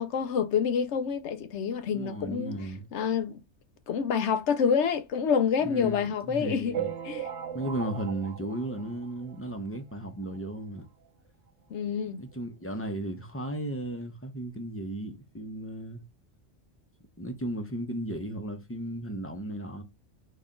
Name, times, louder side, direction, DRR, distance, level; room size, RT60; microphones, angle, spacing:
voice 1, 0.0-2.6 2.9-3.4 3.9-6.8 7.0-7.3 11.7-12.2, left 6 dB, 80° left, 1.0 m, -27 dB
voice 2, 1.9-2.9 5.6-6.9 7.5-10.8 12.2-16.0 17.2-19.8, right 1 dB, 15° left, 0.8 m, -35 dB
sound 1, 6.7-9.6 10.1-10.2 10.3-10.5 10.8-10.9 11.8-11.9 12.3-12.4, right 9 dB, 80° right, 1.0 m, -37 dB
4.3 x 3.2 x 3.8 m
omnidirectional pair, 1.2 m